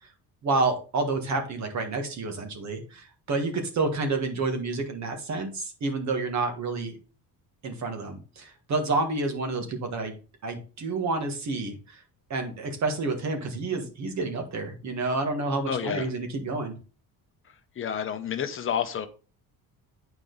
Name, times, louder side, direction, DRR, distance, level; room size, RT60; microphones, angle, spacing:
voice 1, 0.4-7.0 7.6-10.1 10.4-12.0 12.3-16.8, right 3 dB, 45° right, 4 dB, 1.6 m, -29 dB
voice 2, 15.6-16.1 17.8-19.1, left 8 dB, 35° left, 9 dB, 0.7 m, -29 dB
8.9 x 4.9 x 3.9 m, 0.35 s
cardioid pair, 175°, 38 cm